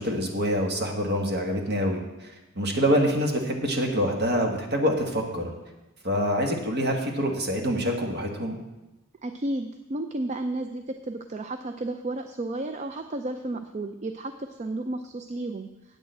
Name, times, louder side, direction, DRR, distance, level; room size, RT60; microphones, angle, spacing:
voice 1, 0.0-5.5 6.0-8.6, equal, 50° right, 2 dB, 1.6 m, -26 dB
voice 2, 9.2-15.7, right 2 dB, 35° right, 7 dB, 0.4 m, -32 dB
8.8 x 6.5 x 7.8 m, 1.0 s
head